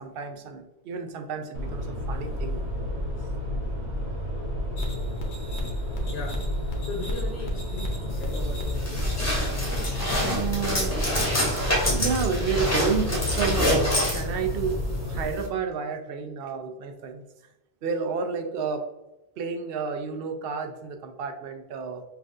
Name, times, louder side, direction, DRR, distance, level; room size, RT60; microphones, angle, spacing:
voice 1, 0.0-2.6 10.1-11.0 11.9-14.8 15.0-17.2 17.8-18.8 19.4-22.0, right 6 dB, 65° right, 5 dB, 0.7 m, -31 dB
sound 1, 1.5-15.3, left 1 dB, 90° right, 1.4 m, -31 dB
sound 2, 4.8-10.5, left 1 dB, 85° left, 1.1 m, -36 dB
voice 2, 6.9-9.2, left 2 dB, 55° left, -2 dB, 0.9 m, -38 dB
sound 3, 8.1-15.5, left 1 dB, 15° left, 0.9 m, -27 dB
5.7 x 2.5 x 2.5 m, 0.95 s
omnidirectional pair, 1.1 m